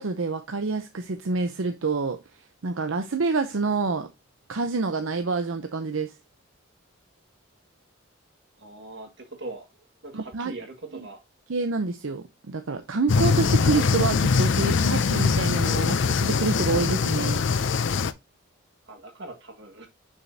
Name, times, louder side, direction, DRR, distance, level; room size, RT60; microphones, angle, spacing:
voice 1, 0.0-2.2 2.6-4.1 4.5-6.1 10.1-10.5 10.9-11.1 11.5-17.4, right 4 dB, 75° right, 0.7 m, -27 dB
voice 2, 8.6-11.2 18.8-19.9, right 2 dB, 55° right, 1.8 m, -41 dB
sound 1, 13.1-18.1, left 5 dB, 60° left, 0.5 m, -22 dB
6.3 x 6.2 x 2.7 m
head